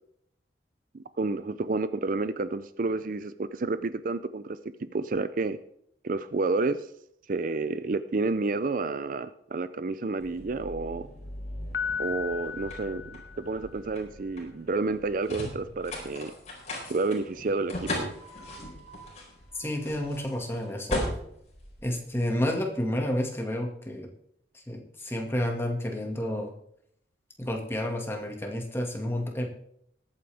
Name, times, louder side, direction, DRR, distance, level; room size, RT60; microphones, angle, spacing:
voice 1, 0.9-5.6 6.0-6.9 7.3-11.1 12.0-16.3 16.9-18.1, right 3 dB, 50° right, 13 dB, 0.5 m, -30 dB
sound 1, 10.2-22.6, left 1 dB, 40° left, 4.4 m, -38 dB
Piano, 11.7-13.8, left 6 dB, 60° left, 0.6 m, -35 dB
voice 2, 19.5-21.0 21.8-24.1 24.5-26.5 27.4-29.5, left 1 dB, 15° left, 1 dB, 1.9 m, -30 dB
21.0 x 8.8 x 3.4 m, 0.71 s
head